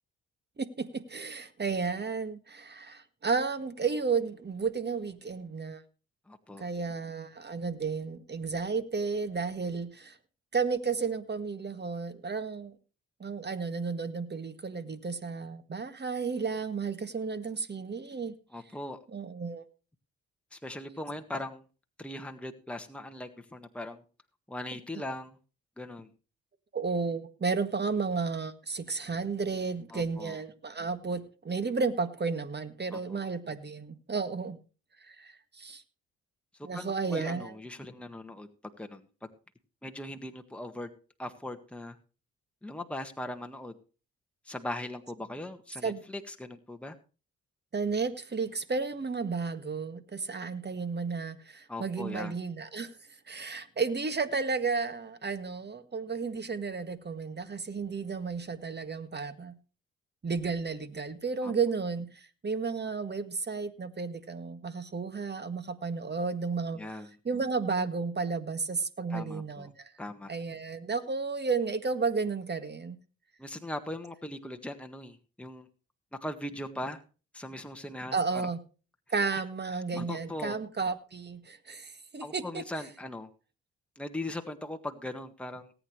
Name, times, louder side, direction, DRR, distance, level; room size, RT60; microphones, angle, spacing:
voice 1, 0.6-5.8 6.6-10.2 10.5-12.7 13.2-18.3 19.1-19.6 26.7-34.6 35.0-35.8 36.6-37.5 45.8-46.0 47.7-53.0 53.3-59.6 60.2-66.8 67.3-69.9 70.3-73.0 78.1-78.6 79.1-82.6, right 4 dB, 35° right, 11 dB, 1.8 m, -33 dB
voice 2, 6.3-6.7 18.5-19.0 20.5-21.6 22.0-24.0 24.5-25.4 25.8-26.1 29.9-30.4 32.9-33.3 36.7-38.5 38.8-39.3 39.8-40.9 41.2-42.0 42.6-43.7 44.4-47.0 51.7-52.3 61.4-61.5 66.7-67.1 69.1-69.7 70.0-70.3 73.4-75.7 76.2-77.0 77.3-78.5 79.3-79.4 79.9-80.6 82.2-83.3 83.9-85.7, left 1 dB, 5° left, 5 dB, 1.6 m, -39 dB
19.0 x 8.9 x 3.2 m, 0.35 s
supercardioid pair, 60°, 30 cm